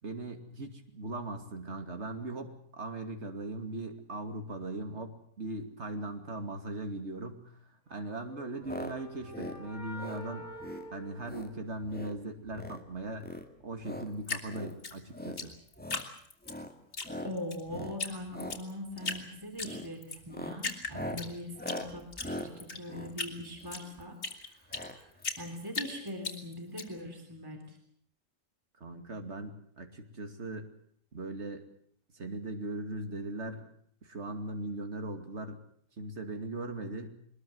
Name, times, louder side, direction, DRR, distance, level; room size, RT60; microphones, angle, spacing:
voice 1, 0.0-7.6 7.9-10.5 10.9-13.3 13.6-15.5 28.8-30.7 31.1-31.7 32.1-33.7 34.0-35.6 36.0-37.2, right 2 dB, 50° right, 6 dB, 2.8 m, -39 dB
sound 1, 8.2-12.1, left 1 dB, 80° right, 4.3 m, -47 dB
sound 2, 8.6-8.9 9.2-9.6 9.9-10.2 10.6-10.9 11.2-11.5 11.8-12.2 12.5-12.8 13.2-14.1 14.5-14.7 15.1-15.4 15.7-16.1 16.4-16.7 17.0-17.3 17.7-18.0 18.3-18.6 18.9-19.2 19.6-19.9 20.2-23.9 24.7-25.0 25.2-25.3 25.5-25.6, left 1 dB, 5° left, 2.0 m, -41 dB
Drip, 14.2-16.6 16.9-17.6 18.0-18.1 18.4-19.2 19.6-20.2 20.6-21.8 22.1-24.9 25.2-26.8, left 4 dB, 60° left, 3.6 m, -37 dB
voice 2, 17.2-24.2 24.5-25.1 25.4-27.8, left 1 dB, 15° right, 4 dB, 3.4 m, -41 dB
23.0 x 21.0 x 7.9 m, 0.62 s
omnidirectional pair, 1.5 m